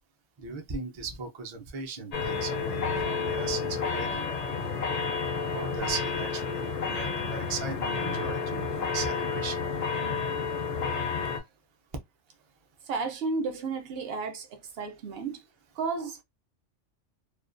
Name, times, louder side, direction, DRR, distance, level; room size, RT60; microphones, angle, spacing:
voice 1, 0.4-4.3 5.3-9.7, right 5 dB, 40° right, 0.4 m, -38 dB
sound 1, 2.1-11.4, left 5 dB, 50° left, 0.4 m, -30 dB
voice 2, 12.9-14.5 14.8-15.4 15.8-16.2, right 4 dB, 60° right, 0.8 m, -32 dB
2.4 x 2.2 x 2.5 m
omnidirectional pair, 1.3 m